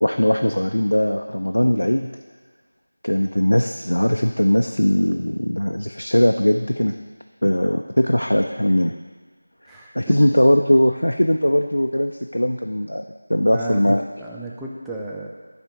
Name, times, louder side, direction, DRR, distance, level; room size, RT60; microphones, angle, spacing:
voice 1, 0.0-2.1 3.0-6.9 7.4-8.9 10.0-13.0 13.3-14.1, left 1 dB, 85° left, 4 dB, 0.3 m, -19 dB
voice 2, 9.7-10.3 13.4-13.8 14.2-15.3, right 1 dB, 5° right, -5 dB, 0.4 m, -33 dB
10.0 x 3.4 x 2.9 m, 1.5 s
figure-of-eight pair, 170°, 0 cm